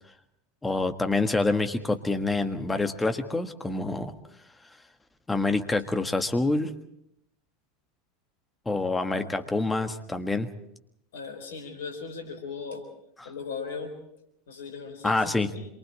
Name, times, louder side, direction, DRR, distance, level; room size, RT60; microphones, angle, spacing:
voice 1, 0.6-4.1 5.3-6.7 8.6-10.5 13.2-13.3 15.0-15.5, left 2 dB, 10° left, 6 dB, 1.7 m, -26 dB
voice 2, 11.1-12.8 13.2-13.9 14.5-15.7, left 5 dB, 65° left, 5 dB, 4.1 m, -38 dB
27.5 x 23.5 x 4.3 m, 0.77 s
figure-of-eight pair, 80°, 0 cm